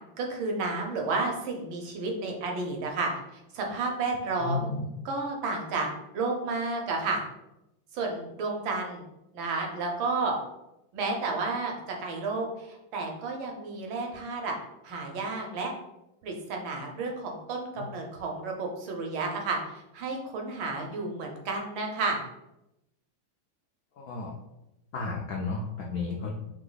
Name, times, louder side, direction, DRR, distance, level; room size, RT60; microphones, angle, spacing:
voice 1, 0.2-4.7 5.0-5.9 6.1-7.2 7.9-9.0 9.3-10.4 10.9-11.7 12.0-14.6 14.8-15.7 16.2-22.2, right 3 dB, 75° right, 1 dB, 1.5 m, -31 dB
voice 2, 4.4-4.8 17.8-17.9 24.0-24.4 24.9-26.3, left 4 dB, 90° left, -1 dB, 0.8 m, -32 dB
3.8 x 3.0 x 3.9 m, 0.90 s
omnidirectional pair, 2.2 m